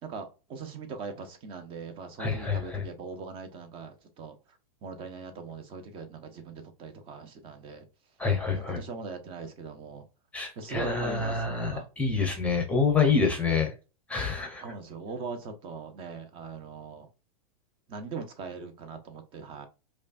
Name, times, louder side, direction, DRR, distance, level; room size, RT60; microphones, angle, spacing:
voice 1, 0.0-7.8 8.5-10.0 10.6-11.9 14.6-17.1 17.9-19.7, right 4 dB, 30° right, 0.8 m, -40 dB
voice 2, 2.2-2.8 8.2-8.8 10.3-13.7 14.1-14.6, left 5 dB, 5° left, 0.8 m, -27 dB
5.1 x 2.3 x 2.5 m
hypercardioid pair, 140°, 19 cm